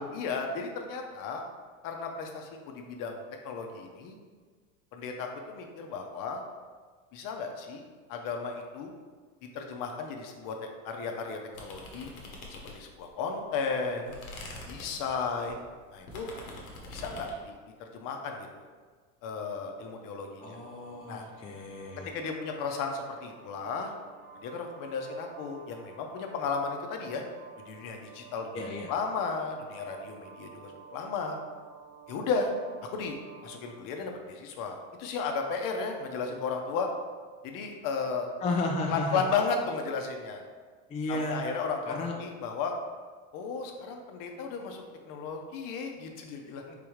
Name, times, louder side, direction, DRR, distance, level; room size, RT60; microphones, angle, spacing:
voice 1, 0.0-1.5 1.8-4.2 4.9-6.4 7.1-7.8 8.1-8.9 9.4-12.1 12.5-14.1 14.7-15.6 15.9-16.3 16.9-17.5 17.8-18.7 19.2-20.6 21.1-21.3 22.0-23.9 24.4-27.2 27.7-28.6 28.9-31.4 32.1-32.5 32.9-33.2 33.4-36.9 37.4-38.3 38.9-40.4 41.1-42.7 43.3-46.8, left 5 dB, 50° left, 3 dB, 0.7 m, -34 dB
sound 1, 11.5-13.1 13.5-17.4, left 2 dB, 90° left, 1.0 m, -45 dB
voice 2, 20.4-22.1 28.5-28.9 38.4-39.2 40.9-41.4 41.9-42.1, left 2 dB, 15° left, 0 dB, 0.3 m, -33 dB
sound 2, 20.4-33.7, right 6 dB, 50° right, 0.7 m, -51 dB
3.7 x 3.5 x 3.1 m, 1.5 s
supercardioid pair, 100°, 41 cm